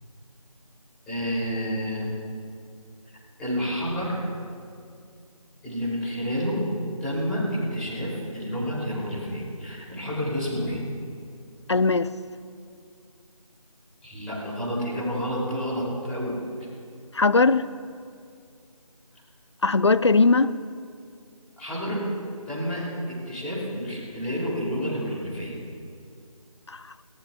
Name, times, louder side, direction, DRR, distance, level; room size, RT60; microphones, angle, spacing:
voice 1, 1.1-2.1 3.4-4.2 5.6-6.6 7.0-10.8 14.0-16.4 21.6-22.0 22.5-25.5, equal, 5° left, 3.3 m, -29 dB
voice 2, 11.7-12.1 17.1-17.7 19.6-20.6 26.7-26.9, left 3 dB, 50° left, 0.5 m, -19 dB
28.5 x 18.0 x 2.5 m
figure-of-eight pair, 165°, 19 cm